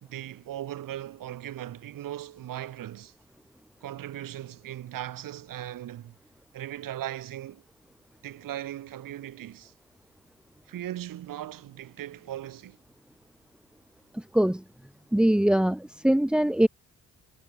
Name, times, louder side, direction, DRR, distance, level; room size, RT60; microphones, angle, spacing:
voice 1, 0.0-3.1 3.8-6.1 6.5-7.6 8.2-9.7 10.7-12.8, right 12 dB, 75° right, 1.2 m, -38 dB
voice 2, 14.1-14.6 15.1-16.7, right 1 dB, 5° right, 0.4 m, -22 dB
supercardioid pair, 50°, 34 cm